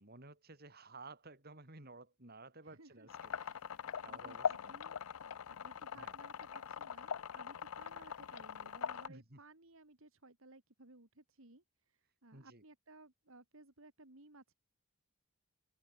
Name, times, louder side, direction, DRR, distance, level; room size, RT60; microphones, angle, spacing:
voice 1, 0.0-4.7 5.9-6.2 9.1-9.4 12.3-12.6, right 3 dB, 45° right, 3.7 m, -55 dB
voice 2, 2.6-5.0 5.5-14.5, right 2 dB, 65° right, 2.6 m, -60 dB
sound 1, 3.1-9.1, left 7 dB, 75° left, 0.5 m, -42 dB
open air
head